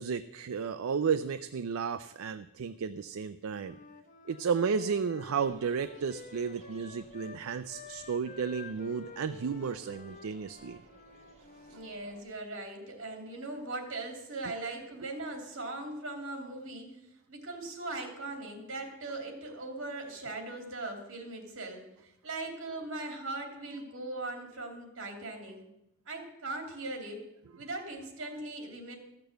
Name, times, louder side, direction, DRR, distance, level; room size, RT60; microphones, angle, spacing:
voice 1, 0.0-3.8 4.3-10.8 11.7-11.8, right 6 dB, 80° right, 11 dB, 0.4 m, -33 dB
Wind instrument woodwind instrument, 3.5-7.4 7.7-12.0, left 4 dB, 35° left, 0.9 m, -50 dB
sound 1, 5.5-12.2, right 2 dB, 30° right, 1.7 m, -59 dB
voice 2, 11.7-17.0 17.3-25.6 26.1-27.2 27.6-29.0, right 2 dB, 60° right, 3 dB, 2.9 m, -39 dB
14.0 x 6.8 x 7.9 m, 0.89 s
head